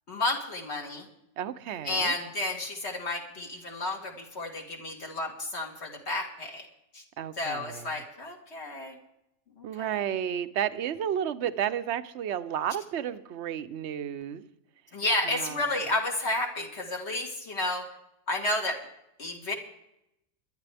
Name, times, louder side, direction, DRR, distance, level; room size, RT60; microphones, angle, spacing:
voice 1, 0.1-1.1 1.8-6.7 6.9-7.0 7.4-9.0 9.6-10.0 14.9-17.9 18.3-18.8 19.2-19.5, left 2 dB, 50° left, 2 dB, 2.3 m, -31 dB
voice 2, 1.4-2.1 7.2-7.9 9.6-14.4 15.2-15.7, right 9 dB, 60° right, 12 dB, 0.9 m, -32 dB
21.0 x 11.5 x 3.4 m, 0.83 s
omnidirectional pair, 1.5 m